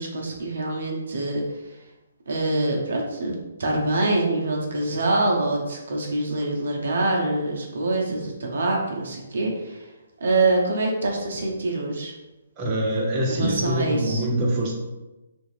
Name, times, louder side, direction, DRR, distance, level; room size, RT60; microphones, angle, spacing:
voice 1, 0.0-1.8 2.3-9.9 10.2-12.1 13.3-14.2, right 2 dB, 70° right, 0 dB, 0.7 m, -25 dB
voice 2, 12.6-14.7, right 1 dB, 25° right, -3 dB, 0.8 m, -24 dB
3.4 x 2.6 x 3.2 m, 1.1 s
hypercardioid pair, 150°, 0 cm